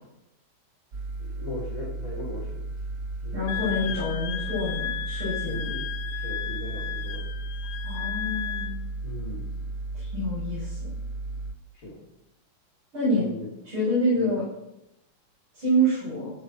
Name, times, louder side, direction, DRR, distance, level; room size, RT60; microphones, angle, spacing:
sound 1, 0.9-11.5, right 2 dB, 45° right, 1.4 m, -34 dB
voice 1, 1.2-2.6 3.2-4.0 5.5-5.9 6.1-7.3 9.0-9.5 11.7-12.0 13.2-13.5 14.1-14.4, left 1 dB, 40° left, -4 dB, 3.6 m, -39 dB
voice 2, 3.3-5.7 7.8-8.8 9.9-10.8 12.9-13.3 13.6-14.4 15.5-16.3, equal, 90° right, -9 dB, 8.7 m, -27 dB
Wind instrument woodwind instrument, 3.5-8.8, left 10 dB, 75° left, 1.6 m, -34 dB
16.0 x 8.8 x 7.9 m, 0.85 s
omnidirectional pair, 2.2 m